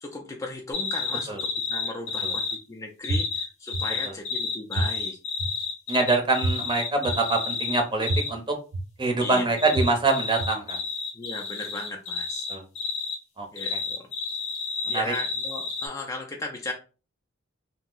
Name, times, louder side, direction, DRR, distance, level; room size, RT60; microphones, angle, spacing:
voice 1, 0.0-5.2 9.2-9.4 11.1-12.5 13.5-14.1 14.9-16.7, left 2 dB, 15° left, 0 dB, 0.4 m, -36 dB
sound 1, 0.7-2.6 3.0-8.3 9.2-13.2 13.6-15.9, left 4 dB, 35° left, 0.7 m, -31 dB
sound 2, 3.1-3.2 3.7-3.8 4.7-4.8 5.4-5.5 6.4-6.5 7.1-7.2 8.1-8.2 8.7-8.8 9.7-9.8 10.4-10.5, right 2 dB, 80° right, 0.6 m, -26 dB
voice 2, 5.9-8.5 9.0-10.8 12.5-12.6 13.4-13.5 14.9-15.1, right 3 dB, 25° right, 3 dB, 0.7 m, -25 dB
2.7 x 2.0 x 3.8 m, 0.34 s
head